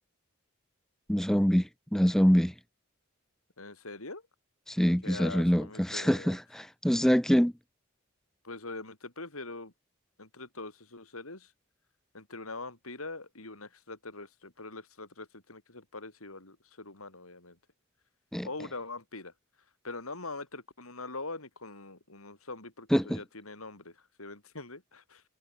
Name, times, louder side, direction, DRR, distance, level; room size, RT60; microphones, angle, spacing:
voice 1, 1.1-2.5 4.7-7.5 18.3-18.5 22.9-23.2, equal, ahead, 0.5 m, -25 dB
voice 2, 3.6-4.2 5.0-6.4 8.4-9.7 10.2-11.5 12.1-17.6 18.4-19.3 19.8-25.2, left 3 dB, 85° left, 6.0 m, -43 dB
head